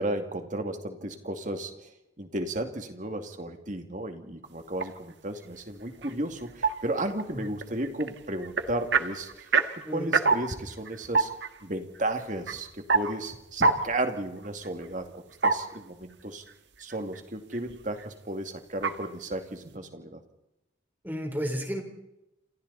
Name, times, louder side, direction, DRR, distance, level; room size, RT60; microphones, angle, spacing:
voice 1, 0.0-1.9 2.2-9.3 9.7-11.3 11.6-16.4 16.8-20.2, right 1 dB, 40° right, 6 dB, 2.5 m, -34 dB
sound 1, 4.8-5.1 5.4-16.2 16.5-17.2 17.5-18.1 18.7-19.0, right 4 dB, 65° right, 1.7 m, -29 dB
voice 2, 9.8-10.2 21.0-21.8, equal, 10° right, 4 dB, 3.8 m, -32 dB
28.5 x 26.5 x 4.2 m, 0.90 s
head